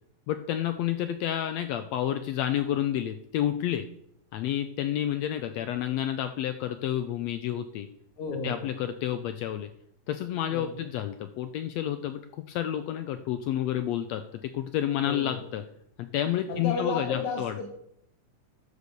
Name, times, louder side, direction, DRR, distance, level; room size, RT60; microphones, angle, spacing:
voice 1, 0.3-3.9 4.3-7.9 8.4-9.7 10.1-15.6 16.0-17.5, left 11 dB, 85° left, 9 dB, 1.5 m, -30 dB
voice 2, 8.2-8.7 10.5-10.9 15.0-15.5 16.5-17.7, left 4 dB, 70° left, 0 dB, 2.8 m, -33 dB
11.0 x 6.8 x 6.7 m, 0.73 s
omnidirectional pair, 3.7 m